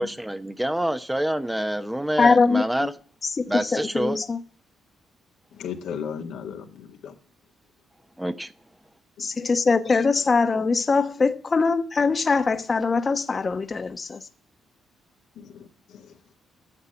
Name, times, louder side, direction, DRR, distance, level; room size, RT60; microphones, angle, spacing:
voice 1, 0.0-2.9 3.5-4.2 8.2-8.5, right 1 dB, 5° right, 0.9 m, -27 dB
voice 2, 2.2-2.6 3.4-3.5 3.7-4.4 9.2-14.2, left 4 dB, 35° left, 1.0 m, -22 dB
voice 3, 5.5-7.2 9.2-9.3 15.4-16.1, left 7 dB, 80° left, 1.9 m, -36 dB
9.9 x 7.4 x 8.3 m
cardioid pair, 85°, 0 cm